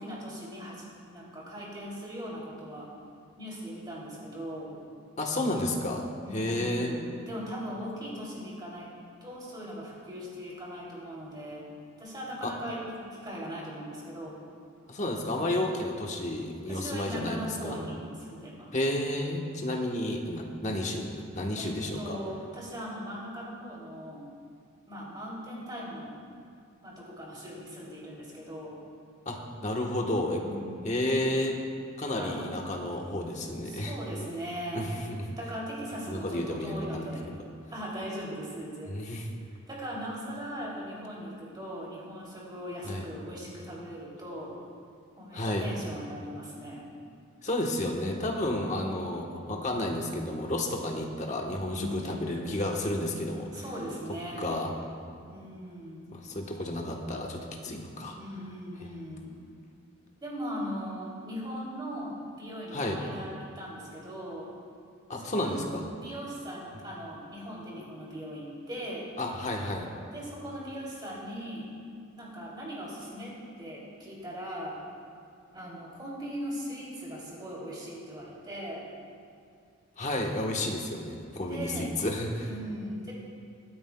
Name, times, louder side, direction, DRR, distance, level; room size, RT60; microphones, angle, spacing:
voice 1, 0.0-2.9 3.4-4.8 6.2-8.9 9.2-11.7 12.0-14.4 16.7-18.7 21.6-24.3 24.9-26.1 26.8-28.8 30.4-31.1 32.2-32.7 33.6-34.9 35.4-37.3 37.7-39.0 39.7-44.6 45.2-46.8 51.7-52.6 53.5-54.5 55.3-56.1 58.2-59.3 60.2-64.5 65.1-65.6 65.9-69.1 70.1-71.7 72.1-74.8 75.5-78.8 81.5-81.9 82.5-83.1, equal, 20° right, -5 dB, 2.9 m, -39 dB
voice 2, 5.2-6.1 6.3-6.9 12.4-12.5 14.9-17.8 18.7-22.2 29.2-30.4 30.8-31.5 32.0-33.9 34.7-35.2 36.1-37.4 38.9-39.3 42.8-43.1 45.3-45.7 47.4-53.6 54.4-54.7 56.1-58.2 58.8-58.9 62.7-63.0 65.1-65.8 69.2-69.9 80.0-82.5, left 1 dB, 35° left, 0 dB, 1.2 m, -31 dB
24.5 x 9.4 x 2.3 m, 2.3 s
head